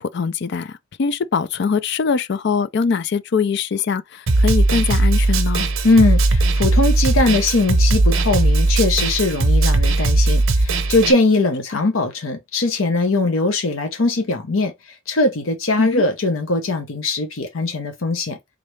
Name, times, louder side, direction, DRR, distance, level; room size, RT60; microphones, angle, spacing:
voice 1, 0.0-5.7 15.8-16.0, left 5 dB, 55° left, 0.4 m, -22 dB
Snare drum, 4.3-11.1, right 2 dB, 75° right, 0.7 m, -17 dB
voice 2, 5.8-14.7 15.1-18.4, left 2 dB, 85° left, 0.9 m, -20 dB
3.8 x 3.2 x 3.1 m
head